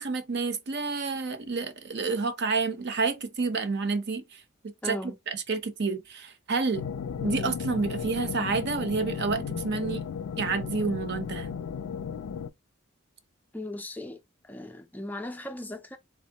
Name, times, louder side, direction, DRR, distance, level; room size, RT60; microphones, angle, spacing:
voice 1, 0.0-4.2 4.8-6.8 7.2-10.1 10.4-11.5, right 4 dB, 55° right, 0.6 m, -29 dB
voice 2, 4.8-5.2 7.2-7.5 13.5-14.2 14.4-16.0, left 1 dB, 10° left, 0.3 m, -37 dB
sound 1, 6.7-12.5, left 7 dB, 90° left, 0.4 m, -35 dB
3.5 x 3.0 x 2.8 m
head